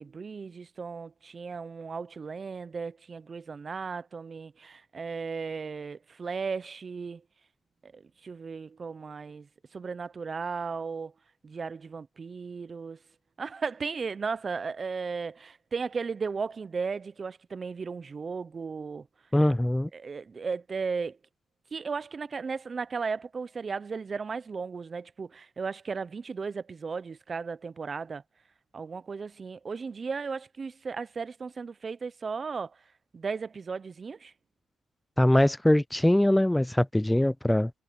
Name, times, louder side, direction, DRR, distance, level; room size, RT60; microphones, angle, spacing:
voice 1, 0.0-7.2 7.8-11.1 11.4-13.0 13.4-19.1 19.9-21.2 21.7-28.2 28.7-32.8 33.1-34.3, right 5 dB, 35° right, 0.6 m, -35 dB
voice 2, 19.3-19.9 35.2-37.7, left 1 dB, 5° left, 0.4 m, -22 dB
cardioid pair, 90°, 0 cm